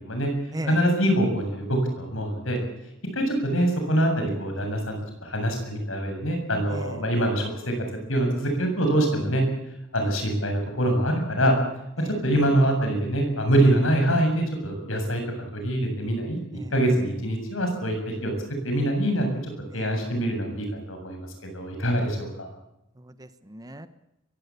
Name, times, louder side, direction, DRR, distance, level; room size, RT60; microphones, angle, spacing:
voice 1, 0.6-2.6 3.1-7.7 8.1-9.4 9.9-11.5 12.0-15.2 15.5-16.4 16.7-18.0 18.2-18.3 18.6-19.3 19.7-22.5, right 1 dB, 85° left, 4 dB, 7.5 m, -24 dB
voice 2, 23.0-23.9, right 1 dB, 20° right, 12 dB, 1.1 m, -37 dB
23.0 x 16.5 x 8.5 m, 0.85 s
head